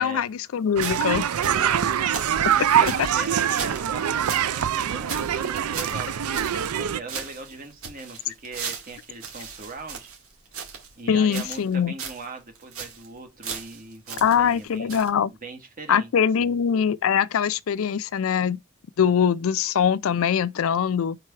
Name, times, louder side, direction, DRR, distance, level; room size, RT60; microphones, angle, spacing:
voice 1, 0.0-1.3 2.8-2.9 11.1-11.9 14.2-15.3 15.9-18.6 19.0-21.2, left 7 dB, 65° left, 0.4 m, -22 dB
sound 1, 0.8-4.5 4.8-4.9 5.1-6.8 7.1-10.9 11.3-11.7 12.0-12.3 12.6-13.1 13.4-14.6 14.9-15.1, right 6 dB, 65° right, 2.0 m, -37 dB
sound 2, 0.8-7.0, right 9 dB, 85° right, 0.5 m, -24 dB
voice 2, 1.4-2.2 2.6-10.1 11.0-15.0 15.4-16.1 16.4-16.5, right 3 dB, 40° right, 1.5 m, -40 dB
4.6 x 4.1 x 5.7 m
head